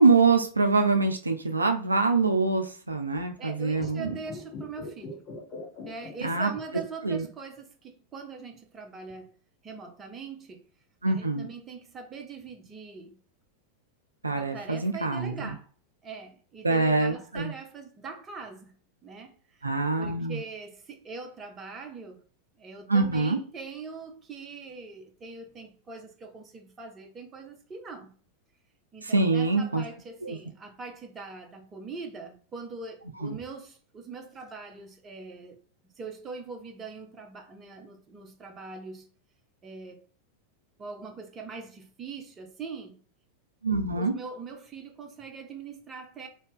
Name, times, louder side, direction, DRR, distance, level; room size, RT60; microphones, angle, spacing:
voice 1, 0.0-4.1 6.2-6.5 7.0-7.2 11.0-11.5 14.2-15.5 16.6-17.5 19.6-20.4 22.9-23.4 29.0-29.8 30.2-30.4 33.2-33.4 43.6-44.1, right 3 dB, 80° right, 0.4 m, -24 dB
voice 2, 3.4-5.2 5.9-9.3 9.6-10.6 11.0-13.2 14.3-15.7 16.0-19.7 20.0-22.2 22.6-28.2 28.9-35.6 35.8-39.1 39.6-40.0 40.8-43.0 44.0-46.3, right 4 dB, 20° right, 0.8 m, -42 dB
sound 1, 3.7-7.1 7.3-7.4, left 3 dB, 35° left, 0.8 m, -41 dB
2.8 x 2.7 x 3.5 m
figure-of-eight pair, 90°, 0 cm